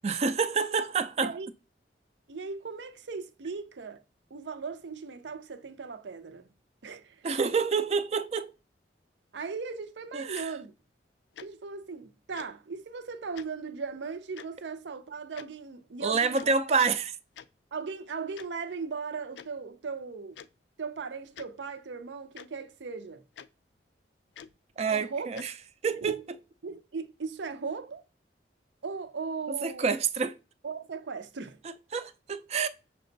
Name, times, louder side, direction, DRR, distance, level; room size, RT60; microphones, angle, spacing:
voice 1, 0.0-1.3 7.2-8.5 10.1-10.5 16.0-17.1 24.8-25.5 25.8-26.2 29.6-30.4 31.6-32.7, right 5 dB, 35° right, 0.4 m, -28 dB
voice 2, 2.3-4.0 4.3-6.5 6.8-7.2 9.3-10.7 11.4-16.5 17.7-20.4 20.8-23.2 24.9-25.4 25.9-26.2 26.6-28.0 28.8-29.9 30.6-31.6, right 5 dB, 85° right, 0.6 m, -38 dB
Tick-tock, 10.3-10.5 11.3-11.5 12.3-12.5 13.3-13.5 14.3-14.5 15.4-15.5 16.3-16.5 17.3-17.5 18.3-18.5 19.3-19.5 20.3-20.5 21.3-21.5 22.3-22.5 23.3-23.5 24.3-24.5 25.3-25.5, left 8 dB, 80° left, 0.4 m, -46 dB
6.0 x 2.2 x 3.8 m
head